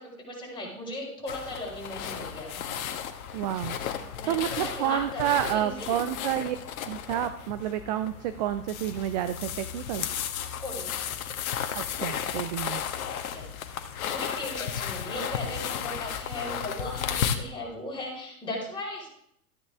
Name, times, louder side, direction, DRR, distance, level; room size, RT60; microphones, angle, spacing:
voice 1, 0.0-2.7 4.1-6.0 10.6-11.0 13.3-13.5 14.1-19.1, left 1 dB, 10° left, -3 dB, 4.8 m, -37 dB
sound 1, 1.3-17.4, left 8 dB, 65° left, 1.4 m, -34 dB
voice 2, 3.3-3.8 4.3-6.6 6.9-10.1 11.7-12.8, right 12 dB, 30° right, 11 dB, 0.4 m, -29 dB
13.5 x 9.7 x 3.6 m, 0.72 s
hypercardioid pair, 120°, 46 cm